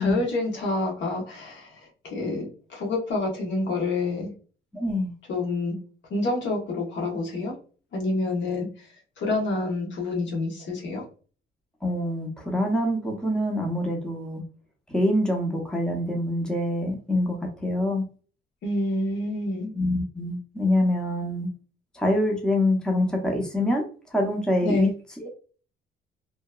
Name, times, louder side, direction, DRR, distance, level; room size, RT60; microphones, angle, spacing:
voice 1, 0.0-1.7 2.0-4.3 5.3-5.8 6.1-7.5 7.9-8.7 9.2-11.0 18.6-19.7 24.6-24.9, left 2 dB, 70° left, -1 dB, 1.1 m, -28 dB
voice 2, 4.7-5.1 11.8-14.4 14.9-18.0 19.7-21.5 21.9-23.9 24.1-24.9 25.2-25.3, left 1 dB, 5° left, 1 dB, 0.7 m, -25 dB
2.8 x 2.1 x 2.3 m, 0.39 s
cardioid pair, 90°, 20 cm